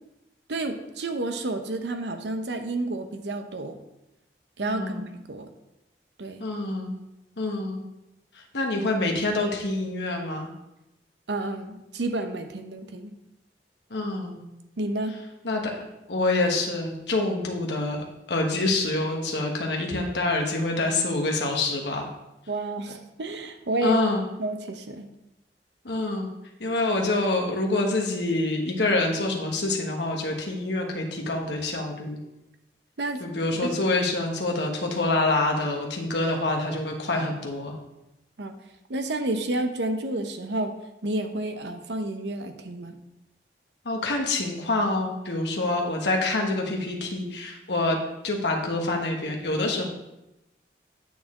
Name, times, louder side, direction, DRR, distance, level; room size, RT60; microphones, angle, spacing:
voice 1, 0.5-3.8 4.6-5.5 6.2-6.4 11.3-13.1 14.8-15.2 22.5-24.0 24.4-25.1 33.0-33.2 33.6-33.7 38.4-38.6 38.9-40.7 41.0-43.0, right 2 dB, 80° right, 7 dB, 0.8 m, -30 dB
voice 2, 4.6-5.1 6.4-7.0 7.4-7.8 8.5-10.5 13.9-14.4 15.4-22.1 23.8-24.2 25.8-26.3 26.6-32.2 33.2-37.7 43.8-48.0 48.2-49.9, left 2 dB, 80° left, 1 dB, 1.3 m, -26 dB
9.1 x 6.6 x 3.7 m, 0.92 s
head